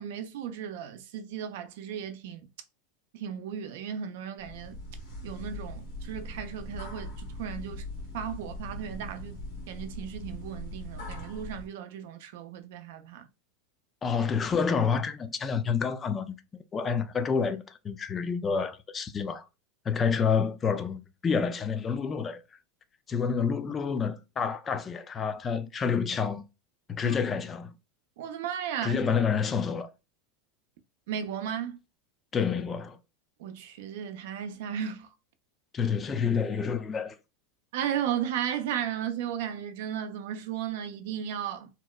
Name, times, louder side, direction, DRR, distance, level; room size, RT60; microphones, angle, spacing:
voice 1, 0.0-2.5 3.1-4.8 5.2-7.8 8.1-9.4 9.7-13.3 27.0-27.2 28.2-29.1 31.1-31.8 33.4-35.1 37.7-41.7, right 9 dB, 70° right, 0.4 m, -35 dB
sound 1, 4.4-11.7, left 1 dB, 80° left, 1.3 m, -40 dB
voice 2, 14.0-16.4 16.7-19.4 19.9-22.4 23.1-26.4 26.9-27.7 28.8-29.9 32.3-33.0 35.7-37.2, left 6 dB, 25° left, 0.3 m, -28 dB
2.8 x 2.1 x 2.2 m
hypercardioid pair, 115°, 0 cm